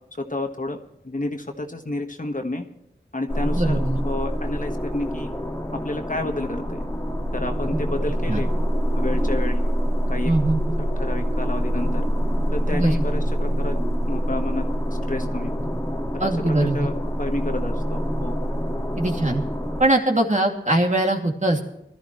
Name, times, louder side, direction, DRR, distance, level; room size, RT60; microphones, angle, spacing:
voice 1, 0.2-0.8 1.0-2.6 3.1-5.3 5.7-6.8 7.3-8.5 8.9-9.6 10.1-10.3 11.0-12.0 12.5-13.8 14.1-14.6 15.1-15.6 16.2-18.4, left 2 dB, 40° left, 4 dB, 1.5 m, -30 dB
sound 1, 3.3-19.9, equal, 15° left, 1.9 m, -25 dB
voice 2, 3.5-4.0 7.7-7.8 8.2-8.4 10.2-10.7 12.7-12.9 16.2-16.9 19.0-19.4 19.8-21.6, right 1 dB, 40° right, 2 dB, 2.4 m, -21 dB
21.5 x 13.0 x 3.1 m, 0.85 s
wide cardioid pair, 60°, 20 cm